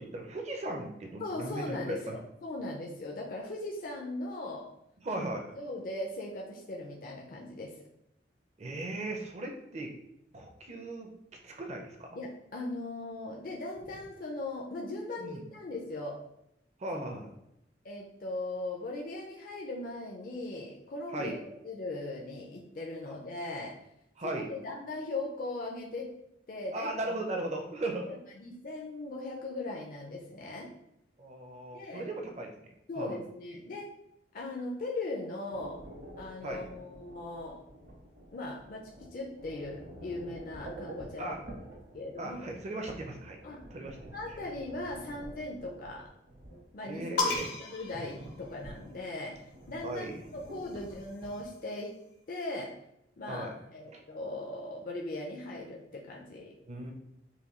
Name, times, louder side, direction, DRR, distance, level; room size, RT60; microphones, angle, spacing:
voice 1, 0.0-2.2 5.0-5.4 8.6-9.9 10.3-11.1 11.4-12.2 15.2-15.4 16.8-17.3 21.1-21.4 24.2-24.5 26.7-28.1 31.2-32.7 33.0-33.2 36.4-36.7 41.2-41.4 42.2-43.4 43.7-44.4 46.8-47.5 49.8-50.2 53.3-53.6 53.9-54.0 56.7-56.9, right 2 dB, 40° right, 2 dB, 0.6 m, -37 dB
voice 2, 1.2-4.7 5.5-7.7 12.2-16.2 17.8-21.4 21.6-23.7 24.2-26.1 26.5-26.9 28.1-30.7 31.7-32.1 32.9-33.9 34.3-35.8 36.2-37.6 38.3-41.3 41.9-42.5 43.4-43.6 44.1-46.0 46.7-49.3 49.7-50.1 50.3-51.9 52.3-52.7 53.2-56.5, left 2 dB, 50° left, -2 dB, 0.5 m, -39 dB
sound 1, 35.5-51.5, right 1 dB, 55° right, 1.0 m, -49 dB
sound 2, 47.2-49.0 50.1-51.7, left 4 dB, 80° left, 0.9 m, -36 dB
5.6 x 2.3 x 3.0 m, 0.81 s
head